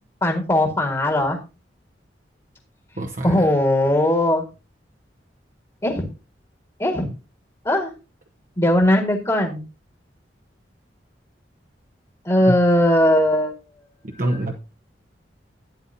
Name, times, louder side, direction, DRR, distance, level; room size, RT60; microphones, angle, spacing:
voice 1, 0.2-1.4 3.2-4.4 5.8-6.0 6.8-7.1 7.6-7.9 8.6-9.6 12.2-13.5, left 1 dB, 20° left, 1.7 m, -19 dB
voice 2, 3.0-3.5 12.4-12.5 14.2-14.5, right 1 dB, 50° right, 1.0 m, -25 dB
12.0 x 9.2 x 2.7 m
head